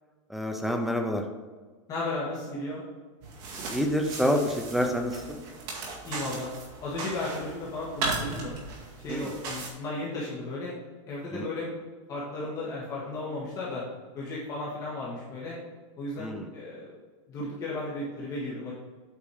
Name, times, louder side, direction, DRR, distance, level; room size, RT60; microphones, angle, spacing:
voice 1, 0.3-1.2 3.7-5.4 9.1-9.3 11.3-11.5 16.2-16.5, equal, ahead, 2 dB, 0.5 m, -28 dB
voice 2, 1.9-2.8 6.0-8.6 9.0-10.7 11.1-11.7 12.1-13.8 14.1-15.6 16.0-16.9 17.3-18.7, left 2 dB, 20° left, -6 dB, 1.8 m, -34 dB
sound 1, 3.2-9.7, right 3 dB, 40° right, 2.1 m, -37 dB
8.6 x 5.1 x 4.9 m, 1.4 s
supercardioid pair, 170°, 16 cm